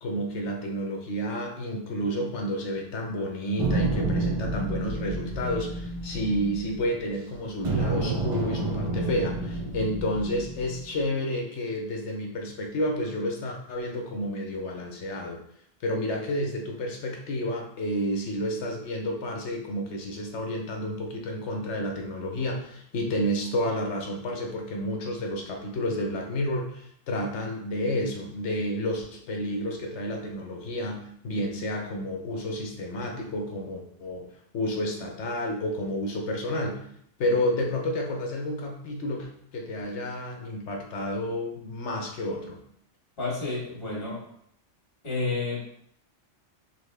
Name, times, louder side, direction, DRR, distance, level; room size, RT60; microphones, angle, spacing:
voice 1, 0.0-15.4 15.8-34.3 34.5-36.8 37.2-42.6, left 1 dB, 70° left, 1 dB, 1.1 m, -30 dB
sound 1, 3.6-7.2 7.6-11.0, right 2 dB, 50° right, 0.4 m, -29 dB
voice 2, 43.2-44.2 45.0-45.7, left 3 dB, 55° left, -5 dB, 1.9 m, -30 dB
4.1 x 3.4 x 3.4 m, 0.70 s
omnidirectional pair, 1.2 m